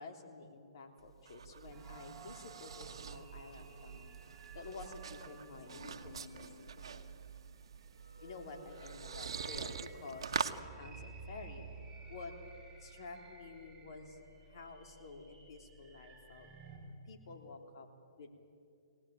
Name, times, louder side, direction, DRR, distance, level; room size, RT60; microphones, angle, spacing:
voice 1, 0.0-4.1 4.5-7.1 8.2-11.6 12.1-12.3 12.8-16.5 17.1-17.9 18.2-18.3, left 3 dB, 60° left, 3 dB, 3.4 m, -50 dB
sound 1, 1.0-10.6, right 6 dB, 75° right, 1.2 m, -44 dB
sound 2, 1.7-16.8, right 3 dB, 15° right, 6.8 m, -55 dB
23.5 x 18.0 x 9.0 m, 2.4 s
hypercardioid pair, 135°, 3 cm